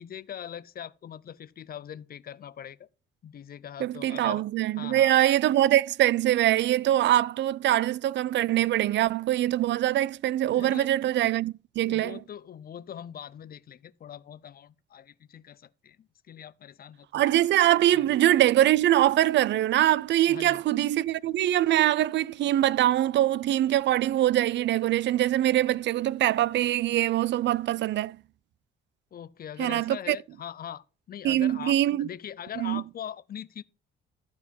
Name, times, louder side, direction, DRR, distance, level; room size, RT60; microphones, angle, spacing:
voice 1, 0.0-2.9 3.2-4.4 4.8-5.1 10.6-11.1 11.8-17.3 17.9-18.1 20.3-20.6 29.1-33.6, left 9 dB, 50° left, 0.6 m, -42 dB
voice 2, 3.8-12.2 17.1-28.2 29.6-30.2 31.2-32.1 32.6-32.8, right 13 dB, 65° right, 0.4 m, -23 dB
13.5 x 4.7 x 5.4 m
cardioid pair, 90°, 20 cm